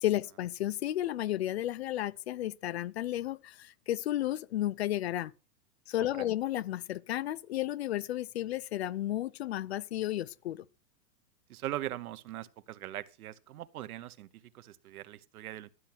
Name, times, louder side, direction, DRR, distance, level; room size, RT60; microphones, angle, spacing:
voice 1, 0.0-5.3 5.9-10.6, left 13 dB, 45° left, 0.5 m, -33 dB
voice 2, 6.0-6.3 11.5-15.7, right 14 dB, 65° right, 1.1 m, -41 dB
12.5 x 7.3 x 5.8 m
supercardioid pair, 170°, 48 cm